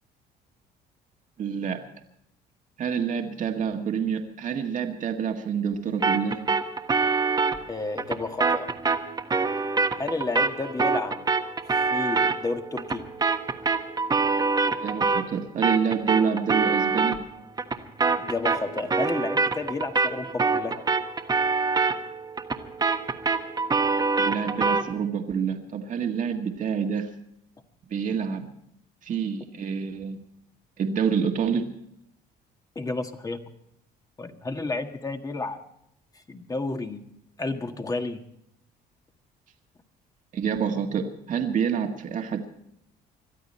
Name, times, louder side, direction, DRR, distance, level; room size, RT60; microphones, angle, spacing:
voice 1, 1.4-1.9 2.8-6.5 14.7-17.2 24.2-27.1 27.9-28.5 29.0-30.2 30.8-31.7 40.3-42.4, right 7 dB, 50° right, 4 dB, 1.8 m, -27 dB
sound 1, 6.0-15.4 15.6-24.9, right 4 dB, 25° right, 1.4 m, -25 dB
voice 2, 7.7-8.7 10.0-11.3 11.7-13.0 18.2-20.8 32.7-33.4 34.2-35.6 36.3-37.0 37.4-38.2, left 3 dB, 20° left, 6 dB, 1.6 m, -31 dB
22.5 x 13.5 x 4.3 m, 0.75 s
cardioid pair, 110°, 17 cm